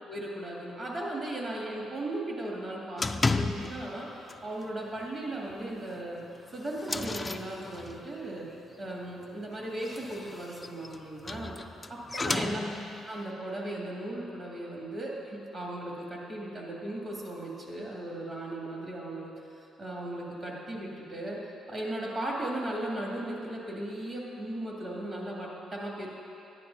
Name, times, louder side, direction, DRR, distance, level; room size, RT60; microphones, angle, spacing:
voice 1, 0.1-6.2 6.5-8.5 8.8-11.5 11.9-12.6 13.0-19.3 19.8-21.4 21.7-26.1, right 1 dB, 40° right, -4 dB, 2.4 m, -37 dB
sound 1, 3.0-4.0 4.3-4.6 5.0-5.1 5.5-5.6 6.2-8.2 9.6-13.1, left 3 dB, 25° left, 0.3 m, -33 dB
12.5 x 9.9 x 2.8 m, 2.8 s
cardioid pair, 90°, 0 cm